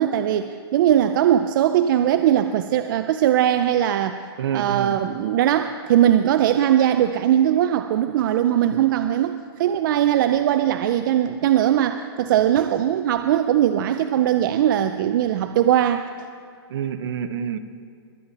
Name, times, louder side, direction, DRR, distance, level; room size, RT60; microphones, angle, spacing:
voice 1, 0.0-4.2 4.5-16.0, right 11 dB, 50° right, 9 dB, 0.5 m, -20 dB
voice 2, 4.4-5.0 16.7-17.6, right 8 dB, 70° right, 11 dB, 0.9 m, -27 dB
22.5 x 8.9 x 4.1 m, 2.3 s
hypercardioid pair, 155°, 13 cm